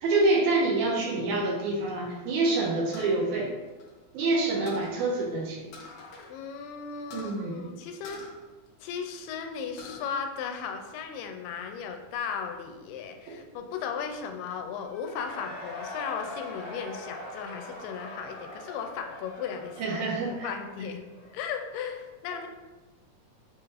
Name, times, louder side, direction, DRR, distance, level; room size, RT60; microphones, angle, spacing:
voice 1, 0.0-3.5 4.1-5.6 7.1-7.7 13.3-13.4 19.8-20.5, right 2 dB, 75° right, -2 dB, 1.9 m, -27 dB
sound 1, 2.9-4.3 4.7-5.0 5.7-6.3 6.6-6.7 7.1-7.4 8.0-9.2 9.5-10.0 10.5-11.2, left 4 dB, 70° left, 1.9 m, -46 dB
voice 2, 6.3-8.3 8.8-20.0 20.4-21.0 21.3-22.5, left 6 dB, 85° left, 5 dB, 2.2 m, -36 dB
Cheering / Crowd, 14.8-21.5, left 1 dB, 55° left, 1.2 m, -42 dB
6.8 x 3.1 x 2.4 m, 1.2 s
omnidirectional pair, 3.8 m